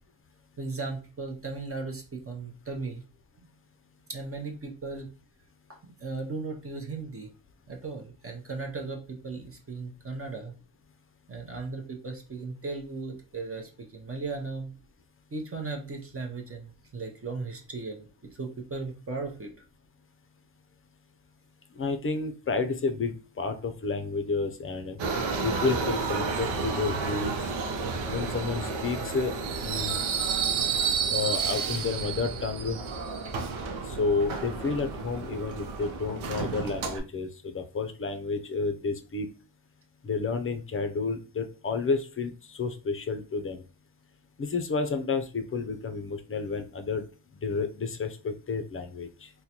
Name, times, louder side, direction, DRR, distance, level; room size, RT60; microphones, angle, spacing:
voice 1, 0.6-3.0 3.4-3.5 4.1-5.1 5.7-7.3 7.7-10.5 11.3-14.7 15.3-18.1 18.4-19.5, right 3 dB, 30° right, 2 dB, 0.7 m, -36 dB
voice 2, 21.7-25.0 25.4-27.5 28.1-29.3 29.6-30.0 31.1-32.8 33.9-39.3 40.0-43.6 44.4-47.0 47.4-49.3, left 4 dB, 30° left, 8 dB, 0.5 m, -30 dB
Subway metro underground, 25.0-37.0, right 5 dB, 90° right, 0.7 m, -31 dB
3.7 x 2.2 x 2.9 m, 0.34 s
cardioid pair, 90°, 46 cm